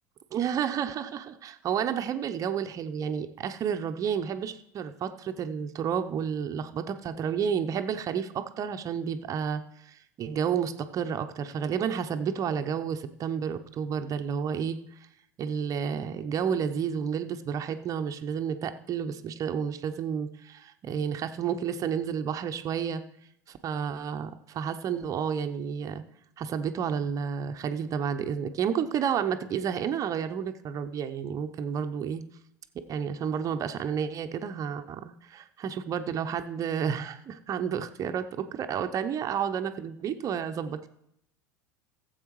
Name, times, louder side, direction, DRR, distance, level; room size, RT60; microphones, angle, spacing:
voice 1, 0.3-14.8 15.4-23.0 23.5-26.0 26.4-32.2 32.9-40.9, right 7 dB, 35° right, 8 dB, 0.8 m, -31 dB
16.5 x 8.0 x 3.2 m, 0.77 s
figure-of-eight pair, 75°, 10 cm